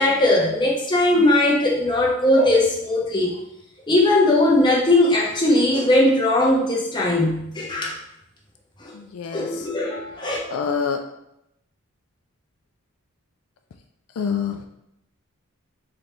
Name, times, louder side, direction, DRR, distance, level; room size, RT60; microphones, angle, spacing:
voice 1, 0.0-3.3 3.9-7.9 8.8-8.9 9.3-10.4, left 1 dB, 20° left, -3 dB, 0.7 m, -19 dB
voice 2, 8.9-9.7 10.5-11.0 14.2-14.7, left 6 dB, 85° left, 5 dB, 0.4 m, -26 dB
3.9 x 3.3 x 3.0 m, 0.82 s
head